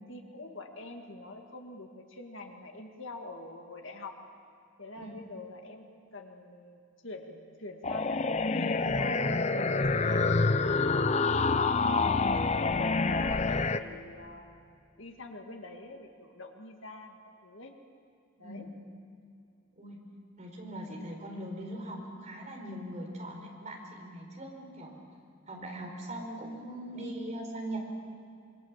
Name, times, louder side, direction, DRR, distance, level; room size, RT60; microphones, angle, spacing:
voice 1, 0.1-4.2 4.8-10.3 10.8-12.8 13.1-14.5 15.0-17.7 18.4-18.7 20.8-21.0, left 2 dB, 60° left, 3 dB, 2.2 m, -45 dB
sound 1, 7.8-13.8, left 3 dB, 30° left, 0.6 m, -27 dB
voice 2, 20.4-25.0 25.5-27.8, right 1 dB, 35° right, 0 dB, 4.6 m, -40 dB
26.0 x 23.5 x 7.5 m, 2.5 s
head